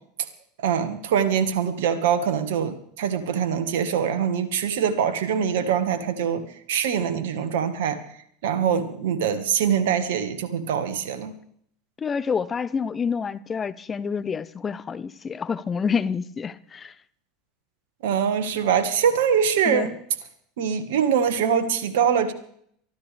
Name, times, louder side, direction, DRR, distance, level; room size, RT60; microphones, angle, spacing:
voice 1, 0.6-8.0 8.4-11.3 18.0-19.9 20.6-22.3, right 8 dB, 70° right, 1.6 m, -23 dB
voice 2, 12.0-16.9 19.7-19.9, left 6 dB, 25° left, 0.9 m, -28 dB
23.5 x 13.5 x 3.5 m
hypercardioid pair, 85°, 0 cm